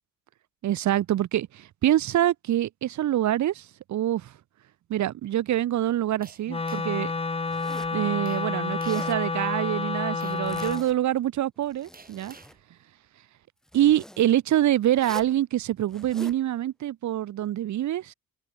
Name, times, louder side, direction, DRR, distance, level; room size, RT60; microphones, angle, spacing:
voice 1, 0.6-4.3 4.9-7.1 7.9-12.4 13.7-18.1, right 12 dB, 70° right, 1.6 m, -25 dB
sound 1, 6.2-7.1 8.3-8.5 8.8-9.1 10.2-10.9 11.9-12.6, right 4 dB, 30° right, 7.1 m, -50 dB
Wind instrument woodwind instrument, 6.5-10.9, left 3 dB, 20° left, 1.3 m, -29 dB
Zipper (clothing), 7.5-8.0 8.7-9.2 10.2-11.1 11.6-12.6 13.7-14.2 14.9-15.4 15.9-16.4, equal, ahead, 5.6 m, -45 dB
open air
cardioid pair, 90°, 30 cm